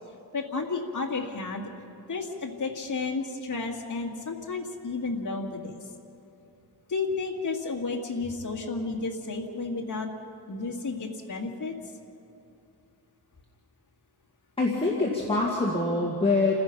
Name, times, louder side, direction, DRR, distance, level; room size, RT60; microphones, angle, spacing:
voice 1, 0.3-1.7 2.1-5.7 6.9-10.1 10.5-11.7, left 3 dB, 45° left, -1 dB, 2.0 m, -32 dB
voice 2, 14.6-16.6, left 3 dB, 15° left, -4 dB, 1.9 m, -25 dB
28.5 x 16.0 x 5.8 m, 2.7 s
wide cardioid pair, 180°, 41 cm